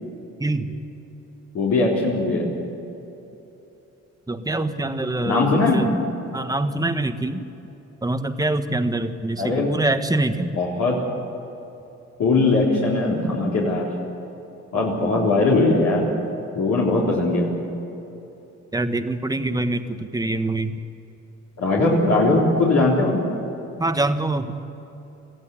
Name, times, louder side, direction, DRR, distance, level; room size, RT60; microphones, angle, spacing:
voice 1, 0.4-0.7 4.3-5.9 6.3-7.4 8.0-10.5 18.7-20.7 23.8-24.5, right 2 dB, 10° right, 8 dB, 1.3 m, -24 dB
voice 2, 1.5-2.5 5.2-5.9 9.4-9.7 10.6-11.0 12.2-13.9 14.7-16.1 16.5-17.5 21.6-23.2, left 2 dB, 65° left, -5 dB, 4.0 m, -20 dB
23.0 x 15.5 x 9.7 m, 3.0 s
cardioid pair, 90°, 30 cm